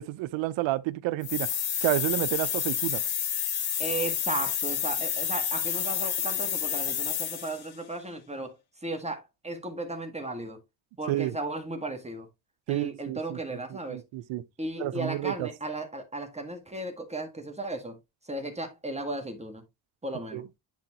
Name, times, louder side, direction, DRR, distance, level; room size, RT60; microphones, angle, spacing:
voice 1, 0.0-1.5 1.8-3.0 11.1-11.4 12.7-13.6 13.9-14.4 14.8-15.5 20.3-20.5, right 16 dB, 90° right, 0.7 m, -30 dB
sound 1, 1.2-7.7, left 9 dB, 55° left, 1.4 m, -29 dB
voice 2, 3.8-8.6 8.8-10.6 11.0-12.3 12.7-14.0 14.6-18.0 18.3-19.6 20.0-20.4, right 2 dB, 15° right, 1.7 m, -35 dB
10.5 x 4.1 x 2.9 m
cardioid pair, 105°, 44 cm